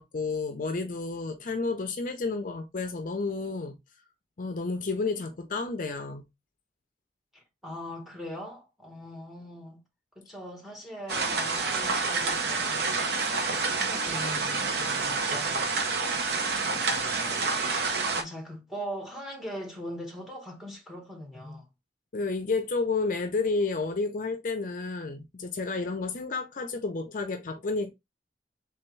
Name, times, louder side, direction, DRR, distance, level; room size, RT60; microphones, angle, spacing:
voice 1, 0.0-3.8 4.4-6.3 22.1-27.9, left 3 dB, 50° left, 0.5 m, -31 dB
voice 2, 7.3-9.8 10.1-13.1 13.4-15.8 16.7-17.6 18.1-21.7, equal, 5° right, 1.3 m, -41 dB
sound 1, 11.1-18.2, right 4 dB, 60° right, 0.7 m, -28 dB
3.4 x 3.4 x 3.1 m
head